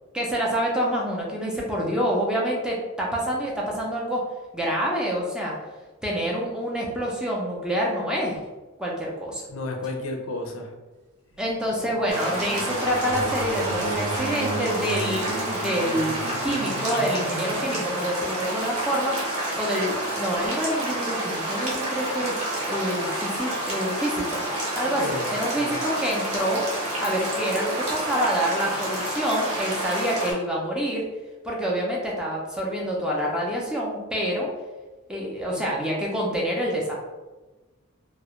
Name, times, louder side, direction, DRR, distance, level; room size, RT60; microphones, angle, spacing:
voice 1, 0.1-4.2 4.5-5.6 6.0-8.4 8.8-9.4 11.4-16.1 16.4-19.2 19.6-22.4 22.7-24.5 24.8-25.0 25.3-26.6 27.0-31.1 31.4-34.5 35.1-36.9, equal, 5° right, -4 dB, 0.4 m, -27 dB
voice 2, 9.5-10.7 25.0-25.8, left 2 dB, 85° left, 3 dB, 0.5 m, -32 dB
sound 1, 11.4-18.7, right 3 dB, 90° right, 0.4 m, -34 dB
sound 2, 12.1-30.3, right 1 dB, 35° right, 0.7 m, -29 dB
2.3 x 2.0 x 2.9 m, 1.2 s
head